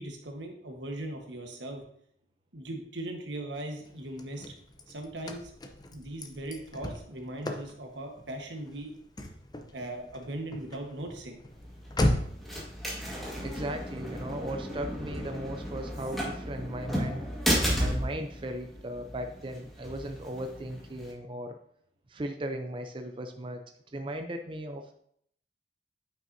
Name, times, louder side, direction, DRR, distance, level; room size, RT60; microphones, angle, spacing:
voice 1, 0.0-1.8 2.5-4.5 4.9-5.5 5.9-8.9 9.7-11.4, right 1 dB, 90° right, 2 dB, 1.3 m, -39 dB
Car / Slam, 3.8-12.5, left 1 dB, 25° left, 0.6 m, -36 dB
sound 1, 11.5-21.1, equal, ahead, 1.6 m, -34 dB
voice 2, 13.4-17.2 17.8-21.6 22.1-23.6 23.9-25.0, right 1 dB, 30° right, 5 dB, 0.5 m, -37 dB
8.9 x 5.6 x 2.7 m, 0.67 s
head